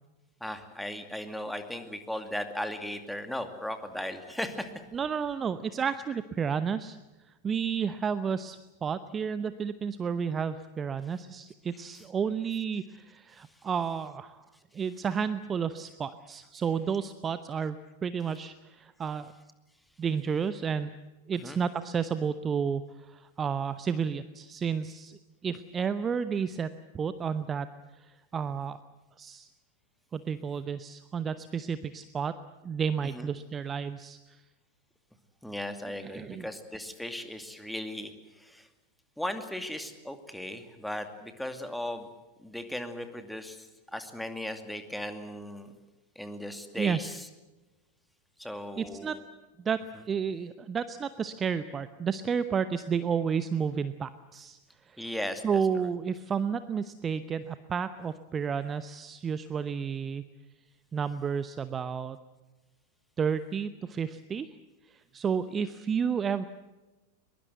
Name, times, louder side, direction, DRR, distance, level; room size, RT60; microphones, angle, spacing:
voice 1, 0.4-4.7 11.8-11.9 21.4-21.6 33.1-33.3 35.4-38.1 38.4-38.7 39.2-42.1 42.4-45.7 46.2-47.3 48.4-49.2 55.0-55.6, left 1 dB, ahead, 7 dB, 2.4 m, -37 dB
voice 2, 4.9-7.0 7.4-14.4 14.7-19.3 20.0-20.9 21.3-26.7 26.9-27.7 28.0-28.8 29.2-29.5 30.1-32.4 32.6-34.4 36.0-36.5 46.8-47.0 48.8-49.2 49.6-54.6 54.9-55.1 55.4-60.2 60.9-62.2 63.2-64.6 64.9-66.5, right 6 dB, 20° right, 13 dB, 0.8 m, -31 dB
22.5 x 22.0 x 8.1 m, 1.1 s
figure-of-eight pair, 90°, 0 cm